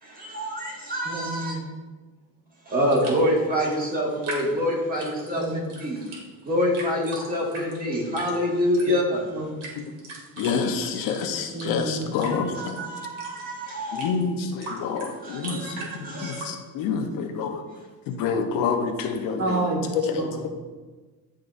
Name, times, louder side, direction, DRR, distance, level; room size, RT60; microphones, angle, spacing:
voice 1, 0.0-1.6 2.6-6.0 6.4-9.2 12.5-14.1 15.2-16.4, equal, 25° right, -3 dB, 1.8 m, -26 dB
voice 2, 1.0-1.6 5.3-5.7 7.6-7.7 9.3-9.6 11.5-12.3 12.6-12.7 15.7-16.3 19.4-20.5, right 2 dB, 45° right, -1 dB, 1.7 m, -30 dB
sound 1, 2.8-16.5, right 2 dB, 65° right, 2.0 m, -41 dB
voice 3, 10.4-12.8 13.9-17.6 18.1-19.7 19.9-20.3, left 5 dB, 70° left, 4 dB, 0.9 m, -28 dB
11.0 x 3.7 x 2.6 m, 1.3 s
cardioid pair, 120°, 35 cm